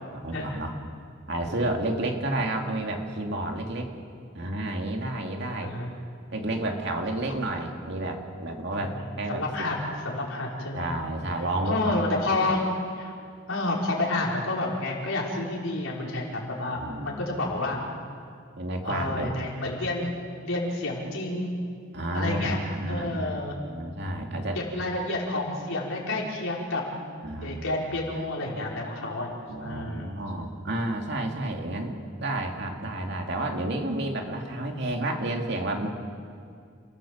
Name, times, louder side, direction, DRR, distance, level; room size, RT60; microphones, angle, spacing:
voice 1, 0.1-0.7 1.3-3.9 4.3-5.8 6.3-9.4 9.8-10.0 10.7-12.2 16.7-17.2 18.6-19.3 21.9-23.3 23.7-24.6 27.2-27.7 28.5-28.6 29.5-32.0 32.2-35.9, right 1 dB, 55° right, 2 dB, 2.6 m, -30 dB
voice 2, 9.3-9.8 10.0-10.9 11.7-12.6 13.0-13.1 13.5-17.8 18.8-20.1 20.4-21.5 22.1-22.6 22.9-23.6 24.5-26.8 27.4-30.1, left 2 dB, 85° left, -2 dB, 4.8 m, -29 dB
30.0 x 15.5 x 7.4 m, 2.2 s
head